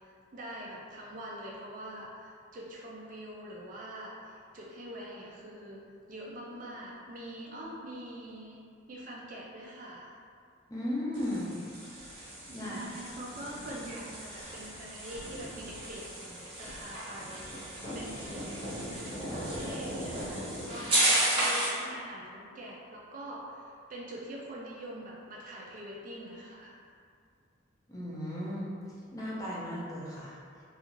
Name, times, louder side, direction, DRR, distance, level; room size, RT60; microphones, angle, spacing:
voice 1, 0.3-8.6 8.9-10.2 12.1-26.8, right 1 dB, 40° right, -4 dB, 0.4 m, -44 dB
voice 2, 10.7-11.5 12.5-12.9 27.9-28.7 29.1-30.4, left 1 dB, 15° left, -7 dB, 0.5 m, -35 dB
sound 1, 11.1-21.8, right 1 dB, 25° right, 0.8 m, -34 dB
2.4 x 2.4 x 2.9 m, 2.3 s
head